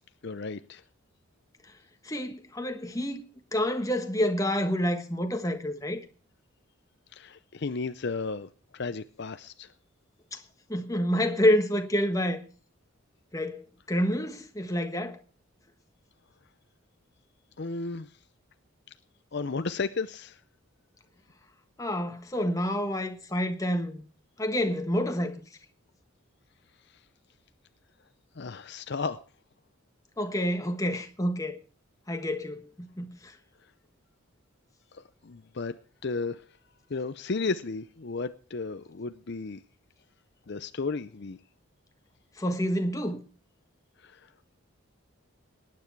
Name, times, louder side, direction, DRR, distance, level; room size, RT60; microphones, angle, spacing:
voice 1, 0.2-0.8 7.1-9.7 17.6-18.1 19.3-20.4 26.9-27.0 28.4-29.2 34.9-35.7 36.0-36.4 36.9-39.6 40.5-41.4 44.0-44.3, left 4 dB, 50° left, 0.6 m, -34 dB
voice 2, 2.0-3.2 3.5-6.0 10.3-10.4 10.7-12.4 13.3-15.2 21.8-24.0 24.4-25.4 30.2-31.6 32.1-33.3 42.4-43.2, equal, 15° left, 1.4 m, -28 dB
18.5 x 9.7 x 4.6 m
head